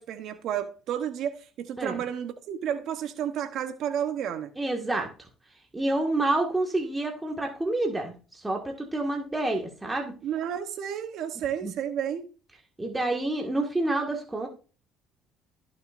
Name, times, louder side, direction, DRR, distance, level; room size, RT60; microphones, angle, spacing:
voice 1, 0.0-4.5 10.2-12.3, right 9 dB, 65° right, 0.9 m, -31 dB
voice 2, 4.6-5.1 5.7-10.1 11.6-11.7 12.8-14.5, right 2 dB, 10° right, 1.8 m, -28 dB
18.5 x 6.4 x 2.5 m
supercardioid pair, 90°, 0 cm